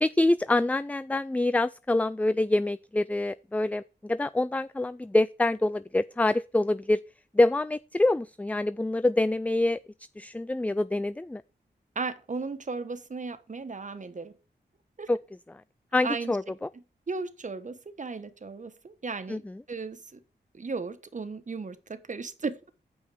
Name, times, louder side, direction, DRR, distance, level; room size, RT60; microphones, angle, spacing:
voice 1, 0.0-7.0 7.3-9.8 10.2-11.4 15.1-15.2 15.9-16.7 19.3-19.6, left 2 dB, 10° left, 0.3 m, -26 dB
voice 2, 11.9-14.3 15.0-15.1 16.0-16.4 17.1-19.4 19.7-20.2 20.5-22.7, right 4 dB, 45° right, 1.2 m, -35 dB
8.2 x 5.5 x 6.0 m
cardioid pair, 65°, 18 cm